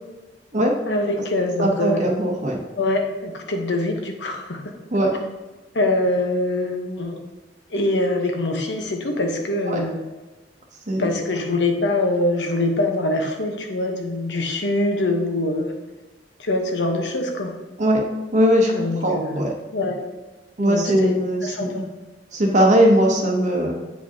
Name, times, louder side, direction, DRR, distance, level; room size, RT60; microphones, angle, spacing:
voice 1, 0.9-2.0 2.8-4.7 5.7-7.2 7.7-10.0 11.0-15.7 16.4-17.6 18.7-19.4 19.7-20.0 20.6-21.9, left 2 dB, 85° left, 3 dB, 1.0 m, -24 dB
voice 2, 1.6-2.6 4.9-5.1 9.7-9.8 10.9-11.1 17.8-18.0 18.3-19.5 20.6-21.9 22.3-23.7, equal, 45° right, 0 dB, 0.8 m, -19 dB
8.1 x 4.9 x 2.8 m, 1.2 s
head